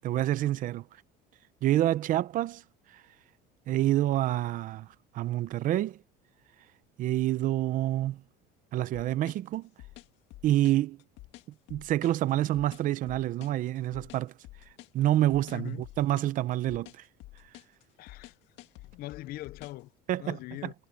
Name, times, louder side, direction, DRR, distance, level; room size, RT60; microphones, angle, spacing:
voice 1, 0.0-0.8 1.6-2.6 2.9-3.0 3.7-4.9 5.1-6.0 7.0-8.2 8.7-9.7 10.4-11.0 11.7-14.3 14.9-17.0 20.1-20.7, right 14 dB, 40° right, 0.7 m, -27 dB
sound 1, 8.9-19.8, left 17 dB, 65° left, 1.9 m, -50 dB
voice 2, 15.5-15.8 18.0-18.3 19.0-19.9 20.2-20.7, left 17 dB, 50° left, 0.5 m, -41 dB
cardioid pair, 160°, 20 cm